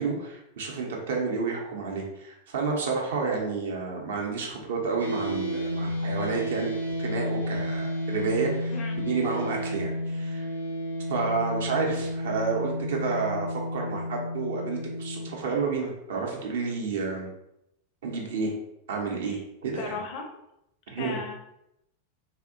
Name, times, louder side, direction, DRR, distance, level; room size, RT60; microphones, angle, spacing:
voice 1, 0.0-6.7 7.0-10.5 11.1-17.3 18.0-18.5 18.9-20.0 20.9-21.2, right 4 dB, 60° right, 0 dB, 0.6 m, -30 dB
sound 1, 5.0-15.3, left 1 dB, 90° left, 0.6 m, -32 dB
voice 2, 19.7-20.3 21.0-21.3, left 4 dB, 40° left, 3 dB, 0.4 m, -36 dB
2.6 x 2.0 x 2.5 m, 0.83 s
figure-of-eight pair, 90°, 0 cm